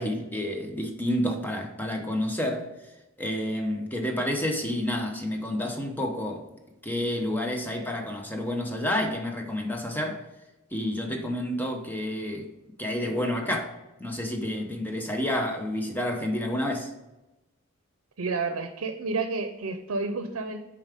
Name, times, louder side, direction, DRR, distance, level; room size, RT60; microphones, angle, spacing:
voice 1, 0.0-2.7 3.2-6.5 6.8-10.2 10.7-12.5 12.8-13.7 14.0-16.9, left 1 dB, 10° left, 0.8 m, -29 dB
voice 2, 18.2-20.6, right 3 dB, 85° right, 0.7 m, -30 dB
7.1 x 4.7 x 3.5 m
head